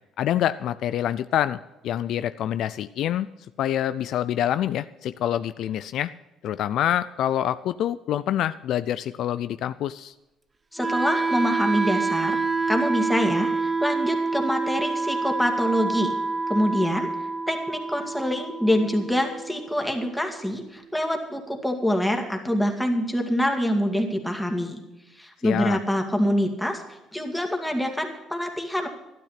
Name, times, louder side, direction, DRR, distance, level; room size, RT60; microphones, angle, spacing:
voice 1, 0.2-3.3 3.6-6.1 6.4-10.1 25.4-25.8, left 11 dB, 65° left, 14 dB, 0.4 m, -26 dB
voice 2, 10.7-16.1 16.5-17.1 17.5-24.8 25.2-28.9, equal, 5° left, 3 dB, 2.2 m, -25 dB
Wind instrument woodwind instrument, 10.8-20.8, right 4 dB, 20° right, 0.7 m, -28 dB
12.5 x 12.0 x 5.8 m, 1.0 s
cardioid pair, 115°, 0 cm